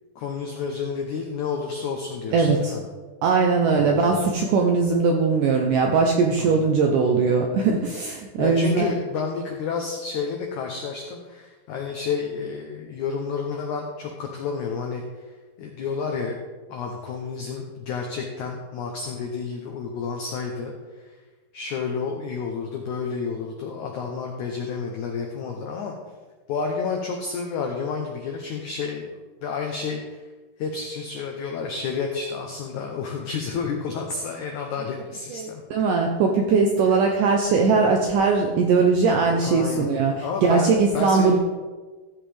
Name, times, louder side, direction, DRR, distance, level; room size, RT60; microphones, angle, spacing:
voice 1, 0.1-2.8 3.8-4.0 6.4-6.7 8.4-15.3 15.6-16.4 16.7-21.1 21.5-25.9 26.5-30.2 30.6-35.6 36.9-37.0 39.4-39.9 40.2-41.4, left 5 dB, 85° left, 2 dB, 1.7 m, -30 dB
voice 2, 2.3-2.7 3.2-8.9 35.3-41.4, right 4 dB, 80° right, 2 dB, 1.9 m, -20 dB
14.5 x 7.5 x 3.4 m, 1.3 s
omnidirectional pair, 4.6 m